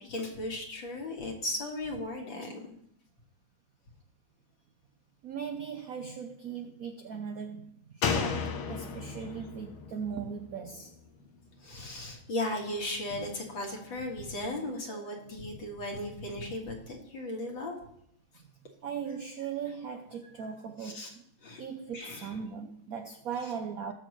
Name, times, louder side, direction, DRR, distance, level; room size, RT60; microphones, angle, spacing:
voice 1, 0.0-2.6 11.6-17.8 20.4-20.5 20.8-21.1 21.4-21.6 21.9-22.4, left 1 dB, 65° left, 2.6 m, -36 dB
voice 2, 5.2-10.9 14.9-15.1 17.4-17.5 18.8-21.2 21.6-23.9, right 7 dB, 70° right, 0.8 m, -39 dB
Slam, 8.0-11.5 11.8-11.9, left 6 dB, 85° left, 1.8 m, -34 dB
19.5 x 6.7 x 3.1 m
omnidirectional pair, 2.3 m